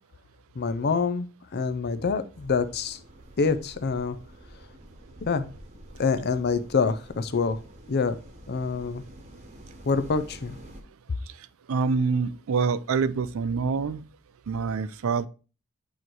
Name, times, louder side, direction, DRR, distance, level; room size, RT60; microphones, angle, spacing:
voice 1, 0.6-3.0 3.4-4.2 5.2-5.5 6.0-7.6 7.9-8.2 8.5-9.0 9.9-10.6, left 4 dB, 50° left, 0.5 m, -26 dB
sound 1, 2.3-10.8, right 1 dB, 30° right, 1.1 m, -48 dB
voice 2, 11.3-14.0 14.5-15.3, right 5 dB, 65° right, 0.4 m, -26 dB
8.3 x 3.1 x 4.5 m
head